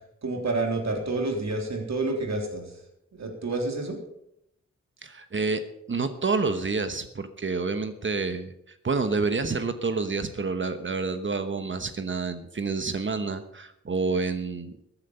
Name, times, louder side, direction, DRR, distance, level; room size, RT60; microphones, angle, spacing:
voice 1, 0.2-2.8 3.1-4.0, right 2 dB, 65° right, 2 dB, 3.4 m, -29 dB
voice 2, 5.0-5.6 5.9-14.7, right 4 dB, 40° right, 9 dB, 1.1 m, -28 dB
15.0 x 10.0 x 5.5 m, 0.78 s
wide cardioid pair, 105°, 29 cm